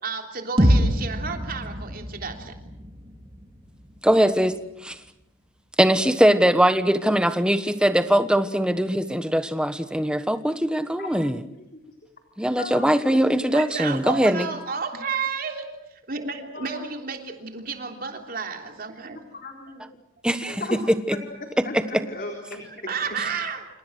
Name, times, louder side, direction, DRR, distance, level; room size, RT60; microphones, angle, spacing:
voice 1, 0.0-2.6 13.5-15.7 16.1-19.2 22.6-23.7, right 5 dB, 45° right, 4 dB, 3.3 m, -31 dB
sound 1, 0.6-4.5, equal, 25° right, 2.8 m, -25 dB
voice 2, 4.0-4.6 4.8-5.0 5.8-11.4 12.4-14.5 20.2-20.8 21.1-21.2 21.7-22.0, equal, 5° right, 10 dB, 1.3 m, -21 dB
voice 3, 12.6-13.2 16.5-16.9 19.3-19.9 20.5-20.8 21.4-22.9, left 2 dB, 45° left, 2 dB, 3.8 m, -35 dB
28.5 x 28.0 x 6.4 m, 0.83 s
head